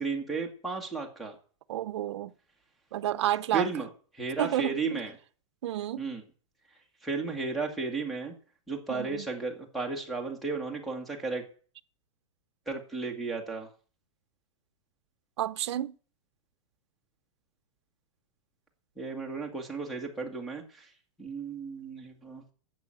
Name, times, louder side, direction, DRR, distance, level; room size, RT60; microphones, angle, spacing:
voice 1, 0.0-1.3 3.5-3.9 4.2-5.1 6.0-6.2 7.0-8.3 8.7-11.4 12.7-13.7 19.0-20.6 21.2-22.4, right 4 dB, ahead, 1.7 m, -34 dB
voice 2, 1.7-2.3 2.9-3.7 4.4-5.0 5.6-6.0 8.9-9.3 15.4-15.9, right 13 dB, 55° right, 0.7 m, -30 dB
11.0 x 8.4 x 7.6 m
supercardioid pair, 170°, 17 cm